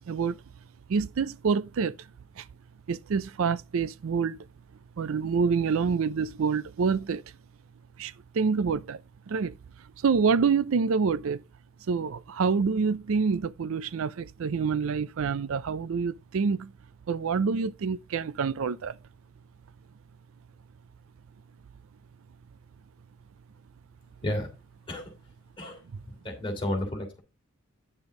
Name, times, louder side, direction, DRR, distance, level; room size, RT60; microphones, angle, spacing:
voice 1, 0.1-0.4 0.9-2.1 2.4-2.5 2.9-4.4 5.0-7.2 8.0-9.0 9.3-9.5 10.0-11.4 11.9-16.7 17.1-19.0, right 5 dB, 65° right, 0.4 m, -27 dB
voice 2, 26.1-27.2, left 1 dB, 25° left, 3.0 m, -32 dB
9.8 x 7.0 x 3.7 m
head